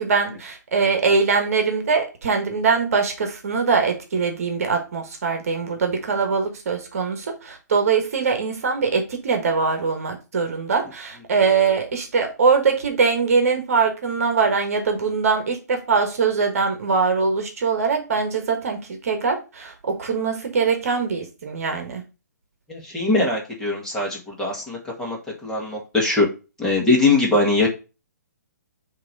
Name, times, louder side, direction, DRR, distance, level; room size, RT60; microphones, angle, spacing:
voice 1, 0.0-22.0, right 5 dB, 55° right, 5 dB, 1.3 m, -22 dB
voice 2, 22.7-26.3 26.6-27.7, left 3 dB, 5° left, -3 dB, 1.8 m, -21 dB
6.5 x 3.1 x 5.3 m, 0.30 s
figure-of-eight pair, 135°, 10 cm